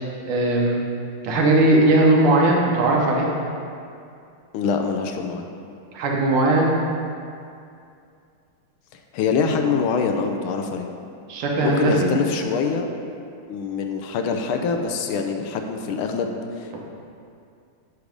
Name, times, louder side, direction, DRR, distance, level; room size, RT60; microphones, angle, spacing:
voice 1, 0.3-0.8 1.2-3.3 5.9-6.7 11.3-12.1, right 2 dB, 85° right, -2 dB, 1.9 m, -18 dB
voice 2, 4.5-5.5 8.9-10.9 11.6-12.9 13.5-16.8, left 5 dB, 80° left, 4 dB, 1.4 m, -24 dB
9.5 x 3.4 x 5.1 m, 2.4 s
omnidirectional pair, 2.4 m